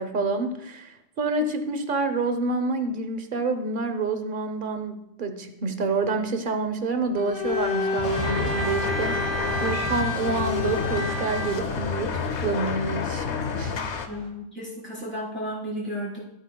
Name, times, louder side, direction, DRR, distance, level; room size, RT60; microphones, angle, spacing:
voice 1, 0.0-13.3 13.6-13.7, right 3 dB, 45° right, 8 dB, 1.0 m, -28 dB
Bowed string instrument, 7.2-11.7, left 2 dB, 35° left, 2.6 m, -29 dB
sound 1, 7.4-14.3, equal, 20° right, 2.4 m, -37 dB
sound 2, 8.0-14.1, left 5 dB, 65° left, 1.0 m, -30 dB
voice 2, 14.1-16.2, equal, 10° left, -6 dB, 4.0 m, -33 dB
15.0 x 8.5 x 2.3 m, 0.83 s
omnidirectional pair, 1.3 m